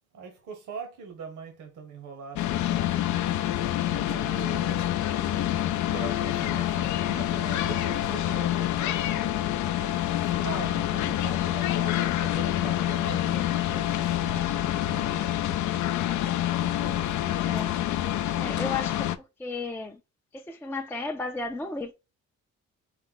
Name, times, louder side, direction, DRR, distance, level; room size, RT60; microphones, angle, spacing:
voice 1, 0.1-3.2 3.8-4.9 5.9-9.4 9.8-15.5 16.6-17.2, right 5 dB, 80° right, 1.0 m, -42 dB
sound 1, 2.4-19.2, left 12 dB, 75° left, 0.4 m, -27 dB
voice 2, 17.4-17.7 18.3-19.1 19.4-20.0 20.3-21.9, left 3 dB, 10° left, 0.3 m, -33 dB
4.4 x 2.1 x 3.9 m
cardioid pair, 90°, 30 cm